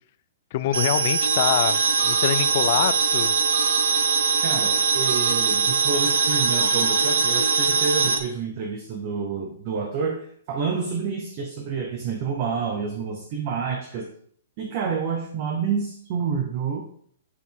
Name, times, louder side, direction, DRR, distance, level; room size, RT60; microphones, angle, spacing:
voice 1, 0.5-3.3, left 12 dB, 35° left, 14 dB, 0.3 m, -25 dB
sound 1, 0.7-8.2, right 5 dB, 80° right, 1.0 m, -21 dB
voice 2, 4.4-14.1 14.6-16.8, right 5 dB, 30° right, 2 dB, 0.8 m, -28 dB
8.1 x 4.8 x 3.6 m, 0.62 s
hypercardioid pair, 170°, 0 cm